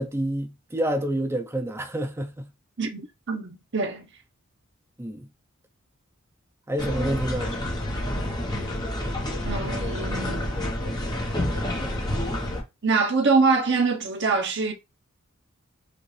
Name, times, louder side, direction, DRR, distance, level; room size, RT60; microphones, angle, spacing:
voice 1, 0.0-2.5 5.0-5.3 6.7-7.6, right 1 dB, 10° right, 0.6 m, -28 dB
voice 2, 2.8-4.1 9.4-10.5 12.8-14.7, right 4 dB, 55° right, 0.9 m, -24 dB
sound 1, 6.8-12.6, left 1 dB, 20° left, 1.0 m, -28 dB
5.1 x 2.5 x 3.3 m
head